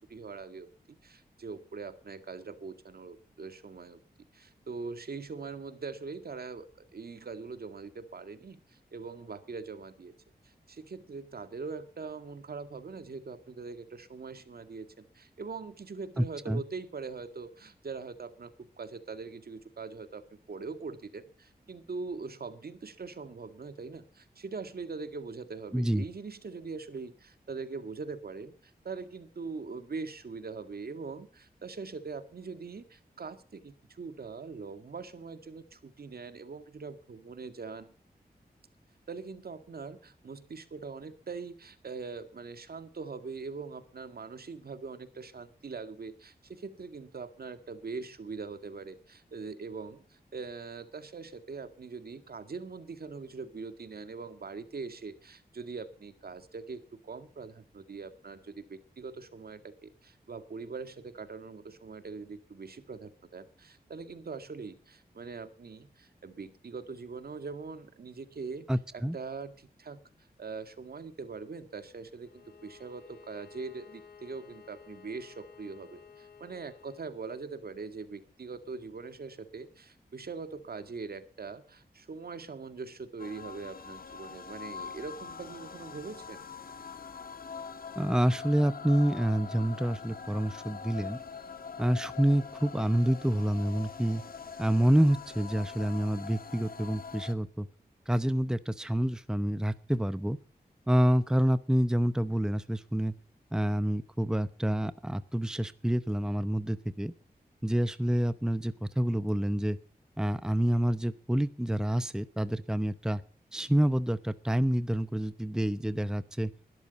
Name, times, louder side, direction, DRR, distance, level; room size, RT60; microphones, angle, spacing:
voice 1, 0.1-0.7 1.0-4.0 4.3-10.1 10.4-37.9 39.1-68.7 68.9-70.0 70.4-86.4, right 4 dB, 70° right, 10 dB, 2.0 m, -42 dB
voice 2, 16.2-16.6 25.7-26.0 68.7-69.2 88.0-91.2 91.8-94.2 94.6-97.7 98.1-100.4 100.9-103.1 103.5-107.1 107.6-109.8 110.2-113.2 113.5-116.5, right 1 dB, 5° right, 13 dB, 0.8 m, -28 dB
Bowed string instrument, 72.2-77.1, left 6 dB, 80° left, 4.0 m, -54 dB
sound 1, 83.2-97.3, left 5 dB, 60° left, 1.8 m, -43 dB
21.5 x 12.5 x 4.2 m, 0.41 s
wide cardioid pair, 115°, 17 cm